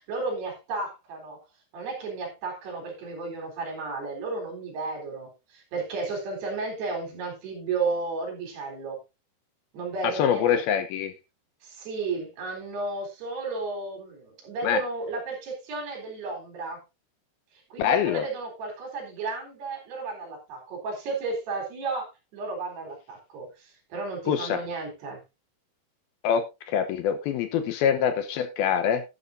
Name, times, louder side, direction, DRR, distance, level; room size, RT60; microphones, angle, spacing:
voice 1, 0.0-1.4 1.7-9.0 9.7-10.6 11.6-16.8 17.7-25.2, right 3 dB, 70° right, 2 dB, 5.8 m, -33 dB
voice 2, 10.2-11.1 14.6-14.8 17.8-18.3 24.3-24.6 26.2-29.0, left 8 dB, 75° left, 10 dB, 2.5 m, -24 dB
12.0 x 10.5 x 2.6 m, 0.25 s
omnidirectional pair, 4.9 m